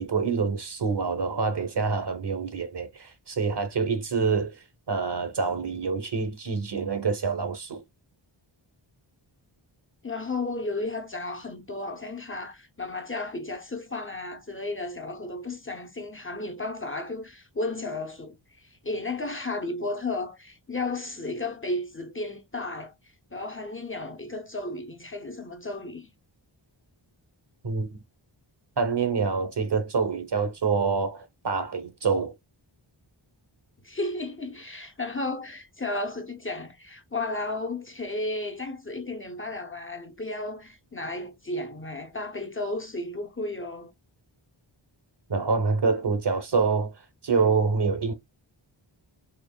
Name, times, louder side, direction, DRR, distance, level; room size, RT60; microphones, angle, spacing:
voice 1, 0.0-4.5 4.9-7.8 27.6-27.9 28.8-32.3 45.3-46.9 47.2-48.1, right 5 dB, 55° right, 1.0 m, -26 dB
voice 2, 10.0-22.9 23.3-26.1 33.8-43.9, left 2 dB, 25° left, 0.7 m, -33 dB
4.4 x 3.0 x 2.3 m
wide cardioid pair, 80°, 48 cm